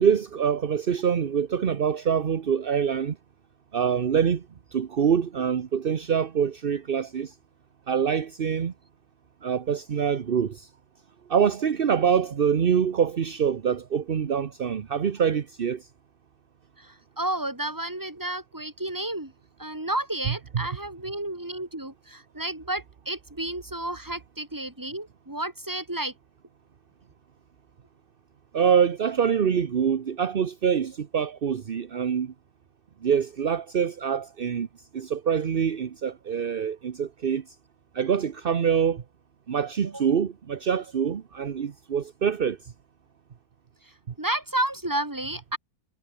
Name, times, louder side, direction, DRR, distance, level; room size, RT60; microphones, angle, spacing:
voice 1, 0.0-3.2 3.7-4.4 4.7-7.3 7.9-8.7 9.4-10.7 11.3-15.9 20.3-20.7 28.5-32.3 33.0-34.7 34.9-37.4 37.9-39.0 39.5-42.7, right 7 dB, 45° right, 0.8 m, -25 dB
voice 2, 16.8-19.3 19.6-26.1 39.9-40.0 44.2-45.6, right 1 dB, 10° right, 2.7 m, -31 dB
omnidirectional pair, 2.0 m